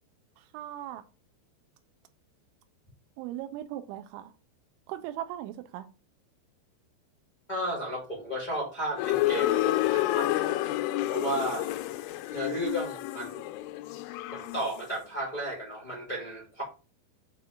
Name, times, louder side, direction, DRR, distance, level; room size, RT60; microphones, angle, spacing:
voice 1, 0.4-1.0 3.2-4.3 4.9-5.9, right 12 dB, 85° right, 3.0 m, -38 dB
voice 2, 7.5-10.6 11.1-11.8 12.3-13.4 14.3-16.6, right 1 dB, 70° left, 0.4 m, -33 dB
sound 1, 9.0-14.9, left 16 dB, 85° left, 3.0 m, -29 dB
7.3 x 3.0 x 4.9 m
omnidirectional pair, 5.4 m